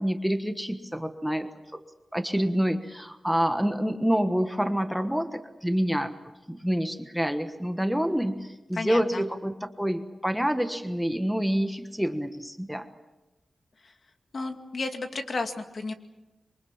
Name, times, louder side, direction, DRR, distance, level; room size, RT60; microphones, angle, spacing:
voice 1, 0.0-1.8 2.1-6.1 6.5-12.9, equal, ahead, 7 dB, 1.3 m, -27 dB
voice 2, 8.7-9.2 13.8-13.9 14.3-15.9, left 3 dB, 55° left, 6 dB, 2.3 m, -32 dB
27.0 x 23.5 x 7.3 m, 1.0 s
wide cardioid pair, 110°, 0 cm